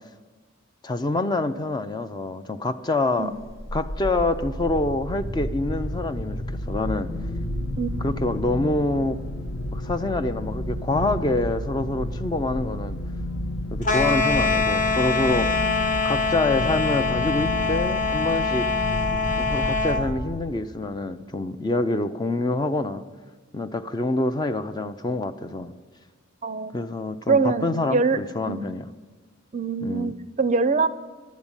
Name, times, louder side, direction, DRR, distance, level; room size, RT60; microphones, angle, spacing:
voice 1, 0.8-3.3 3.7-7.1 8.0-9.2 9.7-13.0 13.7-15.5 16.0-18.7 19.4-23.0 23.5-25.7 26.7-28.8 29.8-30.1, left 2 dB, 20° left, 10 dB, 0.4 m, -26 dB
sound 1, 3.4-20.7, left 1 dB, 65° left, 1.0 m, -31 dB
sound 2, 13.8-20.1, left 4 dB, 35° left, 0.8 m, -24 dB
voice 2, 26.4-26.8 27.3-28.2 28.5-28.7 29.5-30.9, right 4 dB, 35° right, 13 dB, 0.5 m, -23 dB
11.5 x 8.3 x 8.9 m, 1.4 s
head